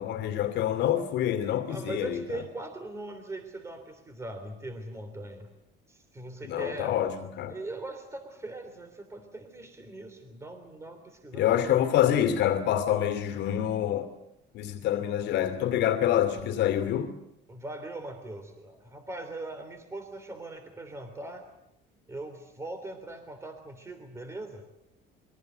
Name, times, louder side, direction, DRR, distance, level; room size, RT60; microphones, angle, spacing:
voice 1, 0.0-2.4 6.4-7.6 11.3-14.1 14.5-17.1, left 11 dB, 60° left, 2.6 m, -26 dB
voice 2, 1.7-5.5 5.9-7.0 7.5-11.7 17.5-21.5 22.1-24.6, right 2 dB, 15° right, 3.2 m, -40 dB
28.0 x 23.5 x 8.0 m
cardioid pair, 155°, 19 cm